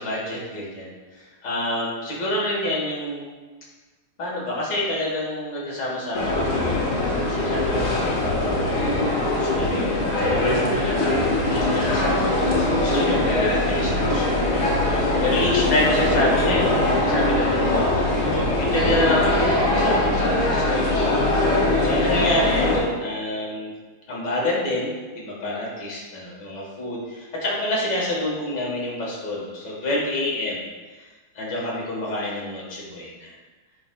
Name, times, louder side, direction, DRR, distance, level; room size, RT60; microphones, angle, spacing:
voice 1, 0.0-3.3 4.2-21.1 21.8-23.7 24.1-30.6 31.0-31.1 31.4-33.3, left 1 dB, 55° left, -4 dB, 2.0 m, -28 dB
sound 1, 6.1-22.8, left 2 dB, 75° left, 2.2 m, -22 dB
11.0 x 4.8 x 2.2 m, 1.3 s
omnidirectional pair, 2.3 m